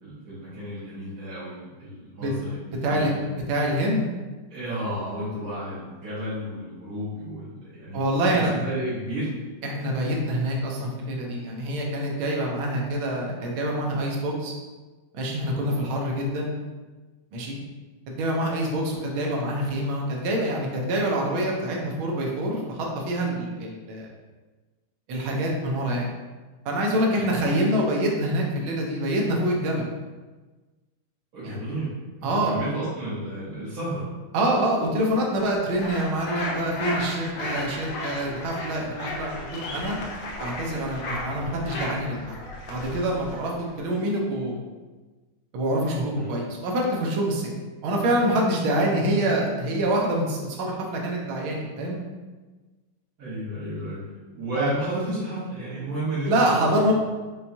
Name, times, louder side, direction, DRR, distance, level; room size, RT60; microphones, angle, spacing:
voice 1, 0.0-3.3 4.5-8.0 8.3-9.3 27.1-27.5 31.3-34.1 46.1-46.3 53.2-54.0 54.3-56.9, right 1 dB, 50° right, -12 dB, 1.3 m, -32 dB
voice 2, 2.7-3.1 3.5-4.1 7.9-8.5 9.6-14.5 15.1-16.5 17.3-17.6 18.1-24.1 25.1-26.1 26.6-29.8 31.4-31.6 32.2-32.6 34.3-40.0 40.4-42.2 42.7-44.7 45.5-47.5 47.8-52.0 54.5-54.7 56.3-56.9, right 1 dB, 80° right, -1 dB, 1.6 m, -26 dB
sound 1, 35.8-43.8, left 2 dB, 75° left, 1.3 m, -34 dB
5.7 x 2.2 x 2.6 m, 1.3 s
omnidirectional pair, 2.2 m